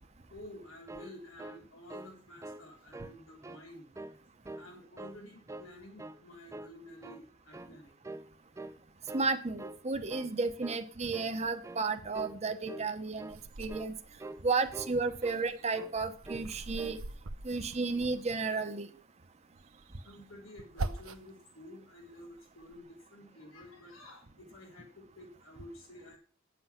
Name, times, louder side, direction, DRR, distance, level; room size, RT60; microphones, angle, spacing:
voice 1, 0.3-4.0 4.6-7.9 20.0-26.2, left 1 dB, 85° left, 1 dB, 3.4 m, -51 dB
sound 1, 0.6-2.2 2.4-2.7 2.9-3.6 3.9-4.7 5.0-5.7 6.0-6.2 6.5-7.3 7.5-7.8 8.0-8.3 8.6-9.3 9.6-9.8 10.1-10.3 10.6-10.9 11.1-11.4 11.6-11.9 12.1-12.4 12.6-12.9 13.2-13.4 13.7-13.9 14.2-14.4 14.7-15.5 15.7-16.0 16.2-16.5 16.8-17.0, right 2 dB, 15° right, 0.5 m, -45 dB
voice 2, 9.1-13.9 14.4-17.0 17.4-18.9, right 4 dB, 35° right, 8 dB, 0.9 m, -33 dB
sound 2, 13.3-14.6 15.0-18.5 19.6-21.4 21.9-22.8, right 2 dB, 85° right, 0.8 m, -43 dB
9.3 x 7.8 x 5.8 m, 0.39 s
head